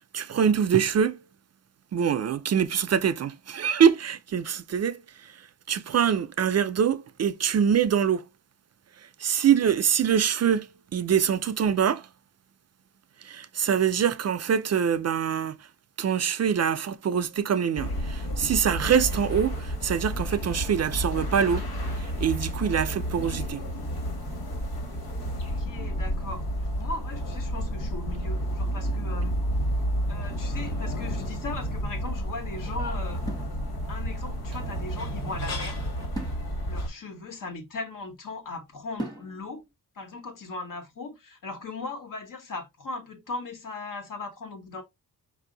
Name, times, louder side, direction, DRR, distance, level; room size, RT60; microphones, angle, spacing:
voice 1, 0.1-1.2 1.9-5.4 5.7-8.3 9.2-12.1 13.2-15.6 16.0-21.6 21.9-23.6, right 8 dB, 45° right, 0.5 m, -24 dB
sound 1, 17.8-36.9, equal, 80° left, 2.0 m, -31 dB
voice 2, 25.3-26.5 26.8-29.4 30.1-33.2 33.9-35.9 36.6-39.6 39.9-44.8, left 3 dB, 60° left, 1.4 m, -38 dB
sound 2, 30.7-31.6 33.3-34.2 36.1-38.1 39.0-39.7, right 1 dB, 10° left, 1.1 m, -41 dB
5.0 x 2.7 x 3.8 m
cardioid pair, 105°, 36 cm